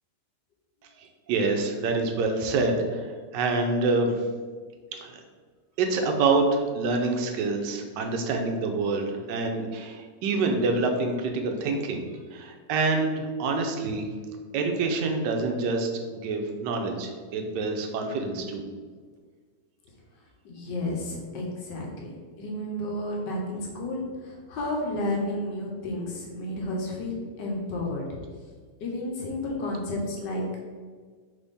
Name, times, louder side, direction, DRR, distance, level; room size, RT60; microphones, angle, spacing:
voice 1, 1.0-4.2 4.9-5.1 5.8-12.0 12.3-14.1 14.5-18.6, right 3 dB, 85° right, 4 dB, 1.2 m, -26 dB
voice 2, 20.4-22.1 22.4-28.2 28.8-30.4, left 1 dB, 85° left, -1 dB, 1.4 m, -31 dB
4.0 x 3.6 x 3.5 m, 1.6 s
omnidirectional pair, 1.9 m